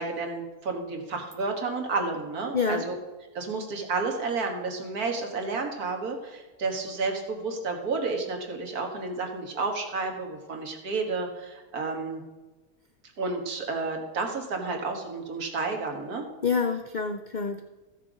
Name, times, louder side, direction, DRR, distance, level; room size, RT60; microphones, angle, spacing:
voice 1, 0.0-3.0 3.3-12.2 13.2-16.3, right 3 dB, 85° right, 2 dB, 2.0 m, -31 dB
voice 2, 2.5-2.8 16.4-17.6, left 5 dB, 85° left, 7 dB, 0.4 m, -27 dB
13.5 x 6.7 x 5.0 m, 1.2 s
omnidirectional pair, 1.5 m